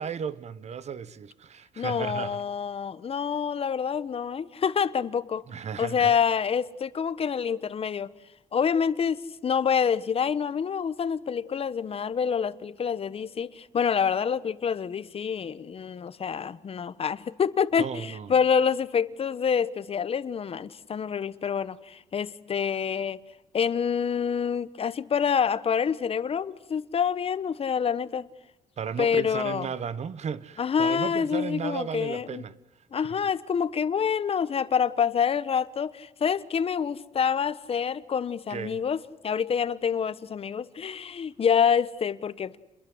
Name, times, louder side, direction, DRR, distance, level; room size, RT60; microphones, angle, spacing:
voice 1, 0.0-2.4 5.5-6.1 17.8-18.3 28.8-32.5 32.9-33.2 38.5-38.8, right 7 dB, 50° right, 1.4 m, -35 dB
voice 2, 1.8-5.4 5.8-8.1 8.5-23.2 23.5-28.3 29.0-29.7 30.6-32.4 32.9-42.6, left 7 dB, 45° left, 1.2 m, -27 dB
29.5 x 22.0 x 8.0 m
cardioid pair, 110°, 14 cm